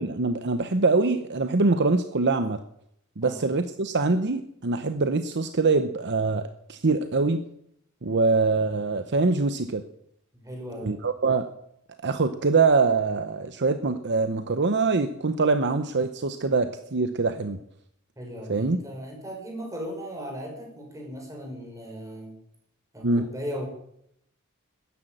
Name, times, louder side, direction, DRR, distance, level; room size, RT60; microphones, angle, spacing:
voice 1, 0.0-2.6 3.2-7.4 8.0-9.8 10.8-11.5 12.0-17.6 18.5-18.8 23.0-23.3, right 3 dB, 55° right, 9 dB, 0.9 m, -24 dB
voice 2, 10.3-10.9 18.2-22.4 22.9-23.7, equal, 15° right, 1 dB, 5.5 m, -37 dB
13.5 x 10.5 x 9.1 m, 0.74 s
head